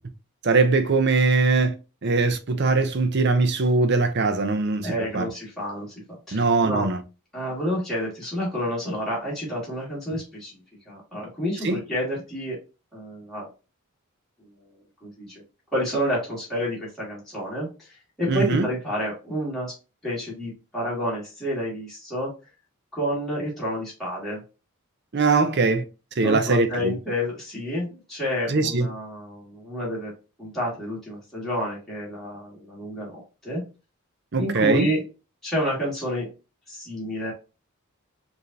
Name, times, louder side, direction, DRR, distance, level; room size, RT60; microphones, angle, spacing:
voice 1, 0.4-1.7 2.0-5.3 6.3-7.0 11.6-11.8 18.3-18.7 25.1-25.8 26.2-26.9 28.5-28.9 34.3-34.9, right 3 dB, 50° right, 0.6 m, -21 dB
voice 2, 4.8-5.9 6.3-6.9 7.3-10.5 10.9-12.6 12.9-13.5 15.0-15.4 15.7-19.7 20.0-22.3 22.9-24.4 26.2-30.1 30.4-33.6 34.4-35.0 35.4-36.3 36.7-37.3, equal, ahead, 1.7 m, -29 dB
4.8 x 2.7 x 2.6 m
head